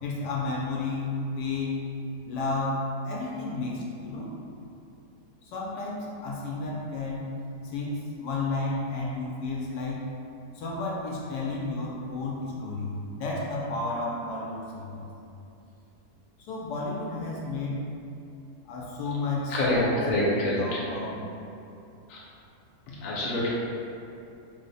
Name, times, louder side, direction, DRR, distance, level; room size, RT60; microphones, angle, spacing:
voice 1, 0.0-1.9 2.3-4.3 5.4-7.3 7.6-10.1 10.5-15.0 16.4-17.9 18.6-20.0 20.4-21.2, left 3 dB, 85° left, -3 dB, 1.1 m, -32 dB
voice 2, 19.5-20.8 22.1-22.2 23.0-23.5, left 1 dB, 60° left, -6 dB, 1.0 m, -26 dB
3.4 x 2.0 x 3.9 m, 2.7 s
omnidirectional pair, 1.7 m